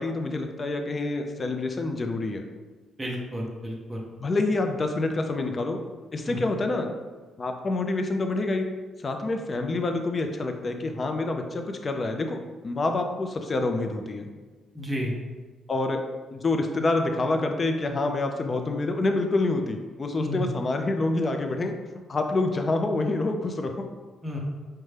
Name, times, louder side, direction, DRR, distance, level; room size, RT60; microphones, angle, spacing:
voice 1, 0.0-2.4 4.1-5.8 6.1-6.9 7.4-8.7 9.0-14.3 15.7-16.0 16.3-21.7 22.1-23.7, left 2 dB, 35° left, 5 dB, 0.4 m, -27 dB
voice 2, 3.0-4.0 6.3-6.4 14.7-15.1 20.2-20.5 24.2-24.4, equal, 15° right, -2 dB, 0.7 m, -31 dB
5.1 x 2.2 x 3.2 m, 1.3 s
cardioid pair, 90°, 0 cm